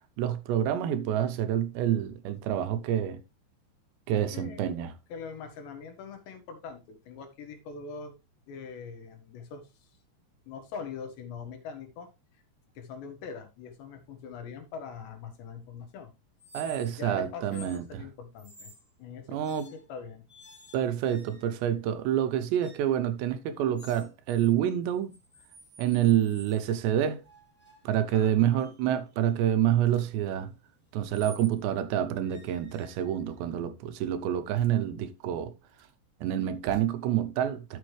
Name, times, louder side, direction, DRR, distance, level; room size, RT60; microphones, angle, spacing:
voice 1, 0.2-3.2 4.1-4.9 16.5-18.0 19.3-19.7 20.7-25.2 25.8-27.2 27.9-30.5 30.9-35.5 36.2-37.8, right 10 dB, 80° right, 2.8 m, -27 dB
voice 2, 4.3-4.7 5.1-8.1 8.5-9.9 10.5-12.1 12.8-16.1 17.0-18.7 19.0-19.4 19.7-20.3 28.1-28.6, left 6 dB, 75° left, 3.8 m, -42 dB
sound 1, 16.4-17.1 17.5-17.8 18.4-18.9 19.4-19.9 20.3-21.7 22.6-23.0 23.8-24.5 24.8-26.6 27.2-31.6 32.2-33.4, right 2 dB, 5° left, 0.7 m, -52 dB
sound 2, 27.2-27.7 28.2-28.3 29.7-30.4 34.4-34.8 35.5-36.0 36.5-36.8, right 3 dB, 20° right, 2.2 m, -52 dB
11.5 x 6.8 x 3.2 m
omnidirectional pair, 5.2 m